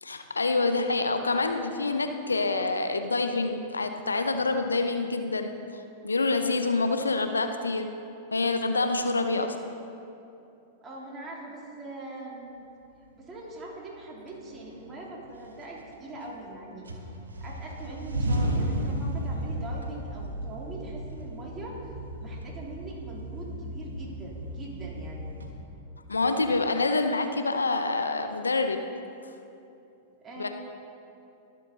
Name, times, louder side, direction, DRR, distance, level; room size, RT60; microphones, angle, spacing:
voice 1, 0.0-7.9 8.3-9.6 26.1-28.8 30.4-30.5, left 3 dB, 85° left, 7 dB, 0.7 m, -27 dB
voice 2, 10.8-12.7 13.1-16.9 17.4-21.9 22.2-25.3 30.2-30.5, right 2 dB, 25° right, -3 dB, 3.2 m, -42 dB
sound 1, 13.6-13.7 14.3-15.0 15.4-16.5 16.8-25.5, right 1 dB, 80° right, 1.3 m, -34 dB
22.5 x 7.5 x 4.0 m, 2.8 s
figure-of-eight pair, 100°, 0 cm